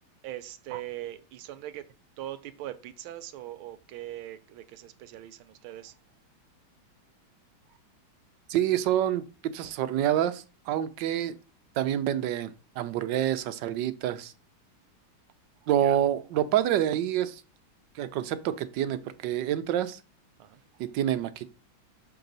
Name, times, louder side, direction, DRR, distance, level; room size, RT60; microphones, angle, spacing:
voice 1, 0.2-1.9 2.2-6.0 7.7-7.8 15.6-16.0 20.4-20.8, right 13 dB, 85° right, 1.5 m, -41 dB
voice 2, 8.5-11.4 11.8-14.3 15.7-17.4 17.9-20.0 20.8-21.4, right 11 dB, 70° right, 1.2 m, -27 dB
6.1 x 5.8 x 4.0 m
omnidirectional pair, 2.2 m